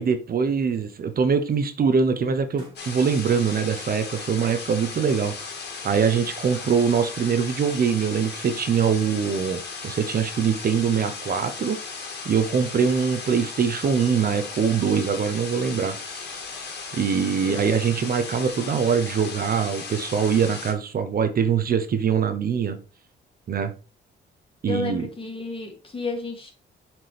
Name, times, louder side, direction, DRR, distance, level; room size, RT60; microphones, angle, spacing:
voice 1, 0.0-5.5 5.8-11.8 12.2-16.0 16.9-22.8 23.5-23.7 24.6-25.1, right 6 dB, 50° right, 9 dB, 0.8 m, -23 dB
sound 1, 0.7-1.0 2.5-3.3 5.8-7.7, right 1 dB, 25° right, 3.6 m, -50 dB
sound 2, 2.8-20.7, left 4 dB, 55° left, 2.1 m, -36 dB
voice 2, 24.7-26.5, left 3 dB, 25° left, 2 dB, 2.4 m, -31 dB
7.3 x 4.5 x 3.4 m, 0.35 s
cardioid pair, 90°, 20 cm